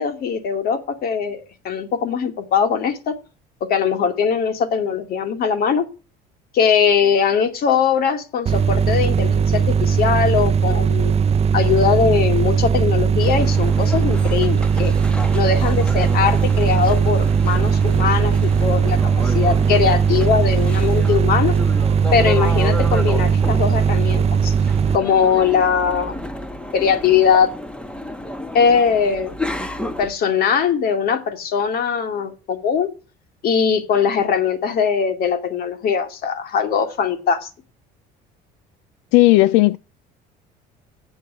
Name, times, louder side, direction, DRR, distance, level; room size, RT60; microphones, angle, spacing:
voice 1, 0.0-3.2 3.6-5.8 6.5-11.1 11.5-14.9 15.3-21.6 22.1-24.5 24.9-26.2 26.7-27.5 28.5-29.4 30.0-32.9 33.4-37.5, left 6 dB, 55° left, 2.4 m, -20 dB
sound 1, 8.5-25.0, right 6 dB, 35° right, 0.6 m, -18 dB
sound 2, 13.2-30.1, left 1 dB, 5° left, 1.3 m, -32 dB
voice 2, 39.1-39.8, left 19 dB, 90° left, 0.4 m, -13 dB
7.9 x 6.9 x 8.3 m
cardioid pair, 105°, 18 cm